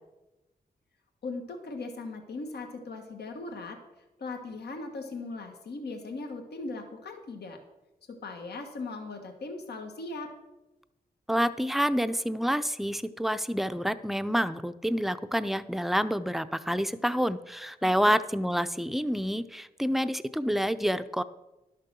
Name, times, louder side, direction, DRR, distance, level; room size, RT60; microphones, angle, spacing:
voice 1, 1.2-3.8 4.2-7.6 8.1-10.3 17.8-18.2, left 3 dB, 80° left, 4 dB, 1.4 m, -39 dB
voice 2, 11.3-21.2, equal, ahead, 12 dB, 0.6 m, -28 dB
11.5 x 6.7 x 6.2 m, 1.0 s
cardioid pair, 65°, 17 cm